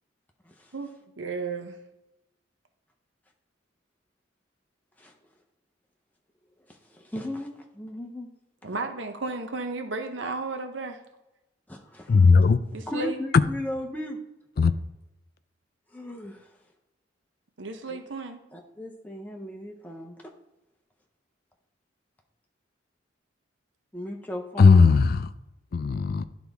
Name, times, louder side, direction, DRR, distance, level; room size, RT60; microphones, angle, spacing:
voice 1, 1.2-1.8 8.6-11.0 12.7-13.2 17.6-18.4, right 3 dB, 70° right, 6 dB, 0.8 m, -33 dB
voice 2, 6.7-8.3 11.7-12.3 12.9-14.2 15.9-16.5 17.9-18.0 18.5-20.2 23.9-24.9, left 1 dB, 10° left, 1 dB, 0.7 m, -36 dB
voice 3, 12.1-12.6 14.6-14.7 24.6-25.3 25.7-26.2, left 4 dB, 50° left, 12 dB, 0.3 m, -17 dB
11.0 x 4.0 x 3.5 m, 0.97 s
head